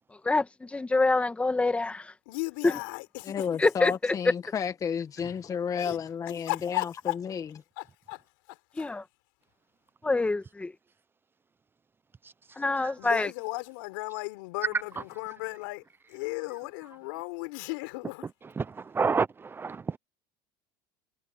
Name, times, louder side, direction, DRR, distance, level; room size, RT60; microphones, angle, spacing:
voice 1, 0.2-2.1 2.6-2.8 3.6-4.1 8.8-9.0 10.0-10.7 12.6-13.3, left 3 dB, 10° left, 1.7 m, -26 dB
voice 2, 2.3-3.5 5.8-6.0 6.4-7.2 7.8-8.2 8.5-8.9 13.0-15.8 16.1-18.3, left 27 dB, 75° left, 4.1 m, -35 dB
voice 3, 3.2-7.5, left 7 dB, 30° left, 1.4 m, -32 dB
voice 4, 18.6-20.0, right 5 dB, 20° right, 0.7 m, -29 dB
supercardioid pair, 110°, 11 cm